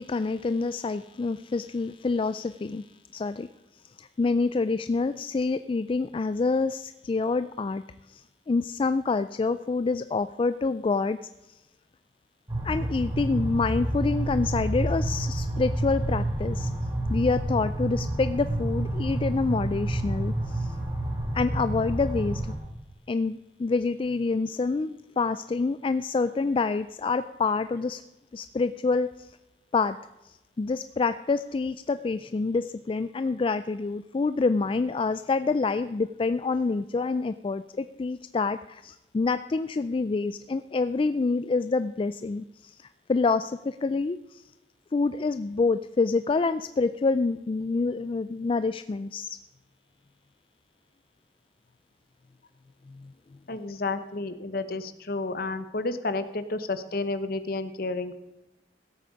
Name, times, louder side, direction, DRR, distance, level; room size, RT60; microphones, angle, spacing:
voice 1, 0.0-2.8 3.1-3.5 4.0-7.8 8.1-11.2 12.6-16.7 17.1-20.7 21.3-22.4 23.1-28.0 28.3-29.3 29.7-30.0 30.2-44.4 44.9-49.4 52.9-53.1, left 4 dB, 30° left, 12 dB, 0.3 m, -27 dB
sound 1, 12.5-22.6, right 1 dB, 25° right, 2.9 m, -29 dB
voice 2, 53.5-58.2, left 3 dB, 55° left, 11 dB, 1.0 m, -31 dB
16.0 x 8.5 x 5.2 m, 0.98 s
head